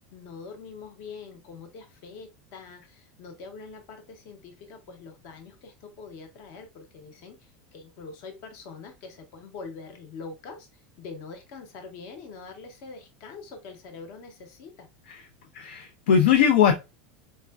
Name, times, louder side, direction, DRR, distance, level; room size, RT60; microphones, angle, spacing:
voice 1, 0.1-14.9, left 4 dB, 45° left, 4 dB, 0.7 m, -44 dB
voice 2, 15.5-16.8, left 8 dB, 90° left, 5 dB, 0.5 m, -20 dB
4.3 x 2.4 x 2.2 m, 0.24 s
supercardioid pair, 175°, 6 cm